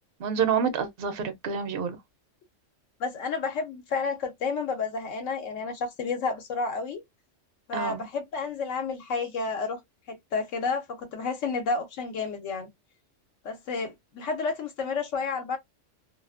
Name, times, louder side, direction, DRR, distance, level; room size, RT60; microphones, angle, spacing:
voice 1, 0.2-2.0 7.7-8.1, right 6 dB, 55° right, 0.8 m, -28 dB
voice 2, 3.0-7.0 7.7-9.8 10.1-12.7 13.4-15.6, left 4 dB, 85° left, 1.0 m, -31 dB
2.5 x 2.4 x 2.4 m
omnidirectional pair, 1.3 m